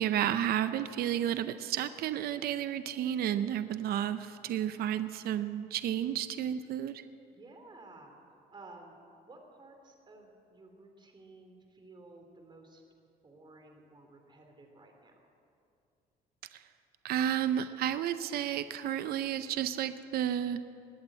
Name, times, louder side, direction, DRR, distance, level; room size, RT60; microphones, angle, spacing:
voice 1, 0.0-7.0 16.5-16.6 17.0-20.6, right 10 dB, 65° right, 12 dB, 0.7 m, -32 dB
voice 2, 7.3-8.1 8.5-12.8 13.2-15.3, right 2 dB, 25° right, 3 dB, 3.0 m, -54 dB
20.5 x 8.1 x 8.6 m, 2.5 s
cardioid pair, 110°, 17 cm